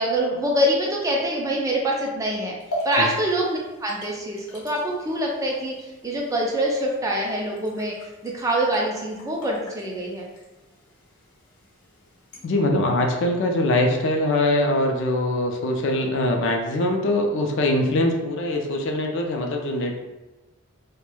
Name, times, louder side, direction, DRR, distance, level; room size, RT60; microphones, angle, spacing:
voice 1, 0.0-2.5 2.8-5.7 6.0-7.9 8.2-10.3, right 1 dB, 15° right, -2 dB, 0.3 m, -25 dB
sound 1, 2.6-12.5, equal, 90° left, 0.8 m, -40 dB
voice 2, 12.4-20.0, left 1 dB, 60° left, 2 dB, 0.4 m, -22 dB
3.0 x 2.1 x 2.2 m, 1.1 s
head